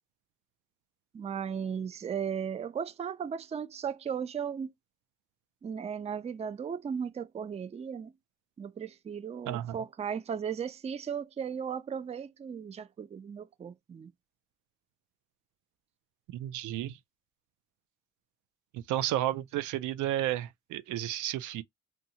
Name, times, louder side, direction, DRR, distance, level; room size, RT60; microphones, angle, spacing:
voice 1, 1.1-4.7 5.6-8.1 8.6-14.1, right 7 dB, 20° right, 0.4 m, -36 dB
voice 2, 9.5-9.8 16.3-17.0 18.7-21.6, right 13 dB, 80° right, 0.5 m, -32 dB
2.7 x 2.3 x 2.7 m
cardioid pair, 90°, 30 cm